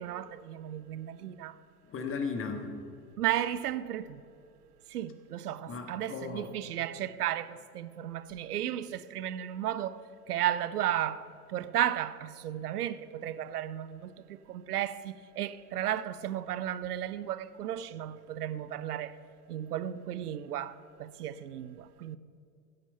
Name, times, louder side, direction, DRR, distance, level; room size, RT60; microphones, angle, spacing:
voice 1, 0.0-1.6 3.2-4.2 4.9-10.0 10.3-19.2 19.5-22.2, right 11 dB, 70° right, 0.7 m, -34 dB
voice 2, 1.8-2.7 5.7-6.5, left 5 dB, 25° left, 1.7 m, -36 dB
15.5 x 8.3 x 5.6 m
figure-of-eight pair, 90°, 47 cm